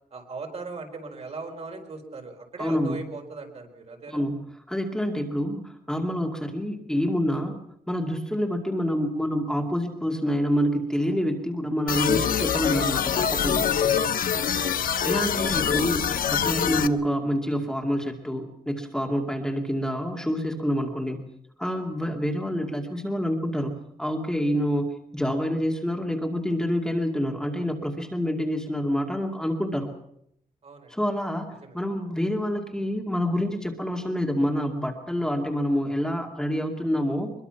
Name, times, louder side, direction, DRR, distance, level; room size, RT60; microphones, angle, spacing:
voice 1, 0.1-4.2 14.5-15.1 30.6-30.9 31.6-31.8, right 3 dB, 45° right, 3 dB, 4.3 m, -39 dB
voice 2, 2.6-3.0 4.1-4.4 4.7-7.5 7.9-13.6 15.1-21.2 21.6-29.9 30.9-31.5 31.7-37.3, equal, 5° left, 1 dB, 2.4 m, -27 dB
sound 1, 11.9-16.9, left 8 dB, 75° left, 1.0 m, -24 dB
24.0 x 22.5 x 5.8 m, 0.73 s
wide cardioid pair, 150°, 15 cm